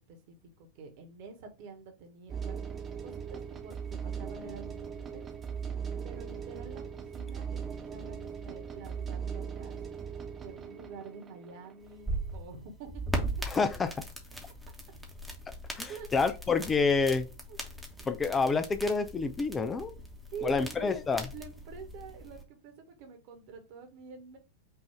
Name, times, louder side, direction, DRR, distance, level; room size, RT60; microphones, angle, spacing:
voice 1, 0.0-5.3 6.0-9.8 10.4-12.9 15.9-16.1 17.5-17.6 18.1-18.6 20.3-21.0 21.3-24.4, right 5 dB, 45° right, 1.4 m, -47 dB
sound 1, 2.3-12.4, right 7 dB, 20° right, 1.1 m, -39 dB
sound 2, 11.8-22.4, right 1 dB, ahead, 1.2 m, -39 dB
voice 2, 13.5-13.9 15.8-17.3 18.1-19.9 20.4-21.3, left 4 dB, 20° left, 0.5 m, -28 dB
5.6 x 2.7 x 3.4 m
figure-of-eight pair, 90°, 0 cm